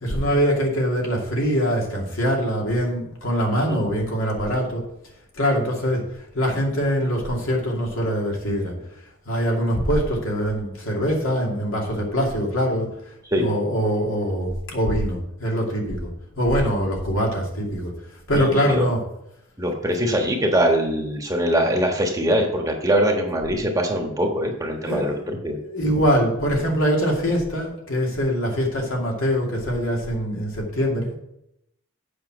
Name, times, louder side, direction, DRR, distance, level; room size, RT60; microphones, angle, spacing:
voice 1, 0.0-4.8 5.4-6.0 6.3-8.7 9.3-12.9 13.3-16.1 16.4-17.9 18.3-19.0 24.6-31.2, equal, 75° left, -1 dB, 2.6 m, -23 dB
voice 2, 18.3-18.8 19.6-25.6, equal, 15° right, 1 dB, 1.3 m, -22 dB
8.0 x 5.9 x 6.2 m, 0.81 s
head